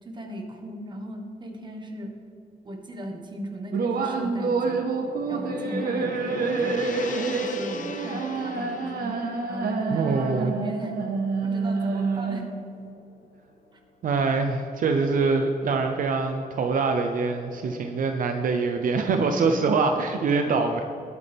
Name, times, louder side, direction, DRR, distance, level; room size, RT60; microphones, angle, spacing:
voice 1, 0.0-2.1 2.6-4.8 5.3-10.9 11.4-12.4 20.4-20.6, equal, 30° right, 2 dB, 1.5 m, -37 dB
sound 1, 3.7-12.7, right 4 dB, 80° right, 1.2 m, -28 dB
Gong, 4.4-12.8, left 4 dB, 55° left, 0.9 m, -40 dB
voice 2, 9.9-10.5 14.0-20.8, right 4 dB, 65° right, 5 dB, 0.7 m, -24 dB
19.5 x 8.3 x 3.5 m, 2.7 s
wide cardioid pair, 165°, 15 cm